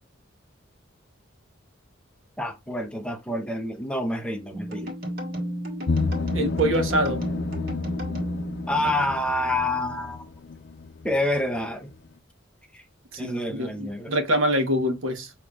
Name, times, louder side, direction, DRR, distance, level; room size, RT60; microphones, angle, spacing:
voice 1, 2.4-4.9 8.7-10.2 11.0-11.9 12.7-12.8 13.2-14.1, left 1 dB, 5° left, 0.6 m, -28 dB
sound 1, 4.5-9.4, equal, 45° right, 1.6 m, -33 dB
sound 2, 5.9-11.7 11.9-12.0, left 4 dB, 55° left, 0.6 m, -31 dB
voice 2, 6.3-7.3 13.1-15.3, right 1 dB, 70° right, 1.1 m, -25 dB
6.7 x 2.9 x 2.4 m
head